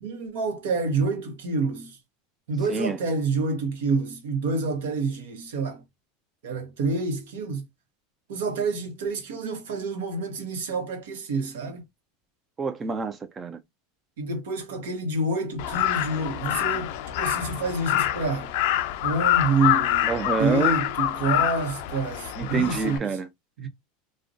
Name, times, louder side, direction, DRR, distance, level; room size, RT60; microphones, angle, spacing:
voice 1, 0.0-2.0 2.5-5.8 6.4-7.6 8.3-11.8 14.2-16.9 17.2-18.5 19.0-20.1 20.4-23.1 23.6-23.7, right 3 dB, 75° right, 0.8 m, -28 dB
voice 2, 12.6-13.6 20.1-20.8 22.4-23.3, right 4 dB, 25° right, 0.4 m, -27 dB
Crow, 15.6-23.0, left 13 dB, 65° left, 0.3 m, -26 dB
2.4 x 2.1 x 2.4 m
hypercardioid pair, 100°, 0 cm